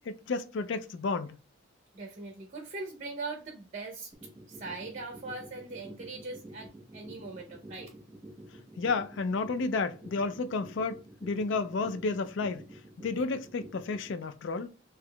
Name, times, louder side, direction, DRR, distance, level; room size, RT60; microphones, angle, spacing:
voice 1, 0.1-1.4 8.8-12.6 13.0-14.7, left 4 dB, 65° left, 0.4 m, -31 dB
voice 2, 1.9-4.1 4.5-7.9 13.1-13.2, right 3 dB, 40° right, 0.6 m, -41 dB
sound 1, 4.1-14.1, right 1 dB, 20° right, 1.2 m, -48 dB
3.5 x 2.8 x 2.2 m
head